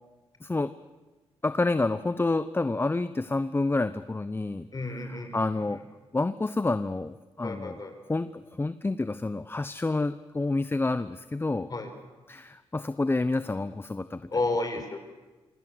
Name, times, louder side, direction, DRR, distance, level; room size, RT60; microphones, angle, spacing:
voice 1, 0.4-0.7 1.4-4.7 5.0-5.8 6.1-7.8 8.1-11.7 12.3-14.2, left 2 dB, 20° left, 13 dB, 0.9 m, -28 dB
voice 2, 4.7-5.4 5.7-5.8 7.4-7.9 11.7-11.9 14.3-15.0, left 2 dB, 35° left, 7 dB, 5.9 m, -31 dB
26.5 x 24.0 x 8.1 m, 1.2 s
cardioid pair, 75°, 11 cm